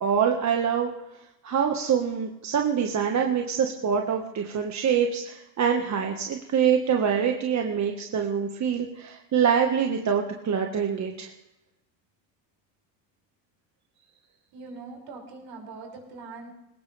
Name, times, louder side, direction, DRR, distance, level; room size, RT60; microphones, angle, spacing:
voice 1, 0.0-0.9 1.4-11.3, right 7 dB, 35° right, 2 dB, 1.5 m, -25 dB
voice 2, 14.5-16.5, right 4 dB, 55° right, 0 dB, 6.1 m, -42 dB
20.5 x 19.0 x 3.4 m, 0.95 s
supercardioid pair, 105°, 49 cm